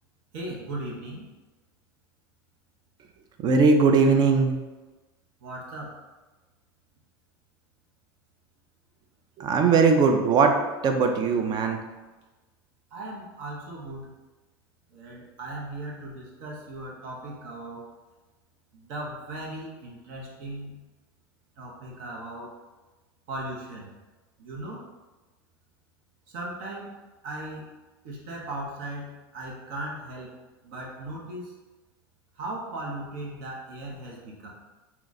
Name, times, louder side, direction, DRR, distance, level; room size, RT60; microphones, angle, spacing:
voice 1, 0.3-1.3 5.4-5.9 12.9-14.1 14.9-17.8 18.7-20.8 21.6-22.5 23.3-23.9 24.4-24.9 26.3-27.0 27.2-27.6 28.0-30.3 30.6-31.5 32.4-34.5, right 1 dB, 65° right, -2 dB, 0.9 m, -37 dB
voice 2, 3.4-4.5 9.4-10.6 10.8-11.8, right 4 dB, 35° right, 5 dB, 0.5 m, -20 dB
2.9 x 2.4 x 4.0 m, 1.2 s
hypercardioid pair, 105°, 12 cm